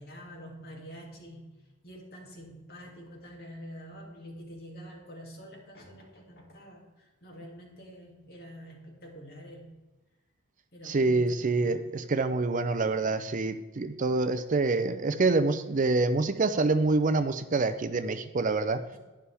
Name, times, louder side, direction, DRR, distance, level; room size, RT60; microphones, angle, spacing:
voice 1, 0.0-1.5 1.8-9.7 10.7-11.9 18.9-19.0, equal, 50° left, 0 dB, 2.6 m, -47 dB
voice 2, 10.8-18.8, right 3 dB, 40° right, 11 dB, 0.5 m, -26 dB
11.5 x 10.5 x 3.4 m, 1.2 s
head